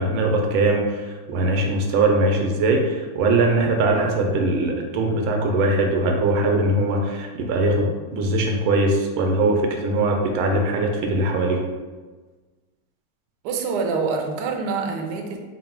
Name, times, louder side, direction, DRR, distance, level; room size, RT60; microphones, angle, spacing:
voice 1, 0.0-11.6, right 2 dB, 90° right, 2 dB, 1.4 m, -21 dB
voice 2, 13.4-15.4, right 4 dB, 75° right, 3 dB, 0.9 m, -26 dB
4.0 x 2.0 x 4.4 m, 1.3 s
omnidirectional pair, 2.2 m